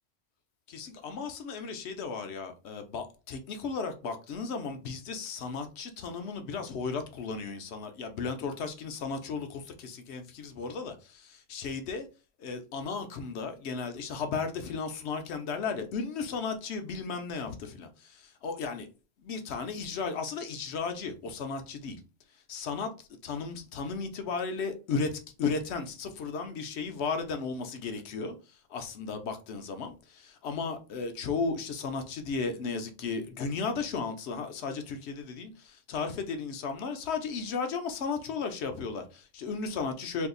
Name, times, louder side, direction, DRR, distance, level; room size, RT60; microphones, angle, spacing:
voice 1, 0.7-12.1 12.4-18.9 19.2-22.0 22.5-22.9 23.2-40.3, left 5 dB, 65° left, 0.8 m, -35 dB
2.7 x 2.4 x 3.7 m
omnidirectional pair, 1.3 m